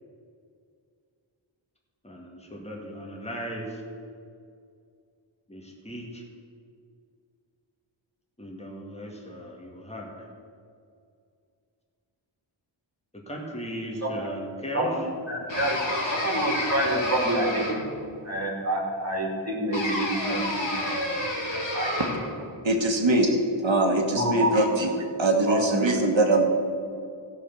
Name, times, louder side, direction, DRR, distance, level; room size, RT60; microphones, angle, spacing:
voice 1, 2.0-3.8 5.5-6.2 8.4-10.3 13.1-15.1, equal, 15° left, -1 dB, 1.9 m, -37 dB
voice 2, 14.7-17.7 18.2-21.9 24.1-24.7 25.5-25.8, right 1 dB, 30° right, 0 dB, 2.6 m, -28 dB
sound 1, 15.5-18.0 19.7-22.4, left 1 dB, 70° left, 2.7 m, -30 dB
voice 3, 22.6-23.3 23.6-24.9 25.2-26.4, right 2 dB, 70° right, 3 dB, 1.7 m, -22 dB
15.0 x 5.7 x 6.9 m, 2.3 s
wide cardioid pair, 70°, 48 cm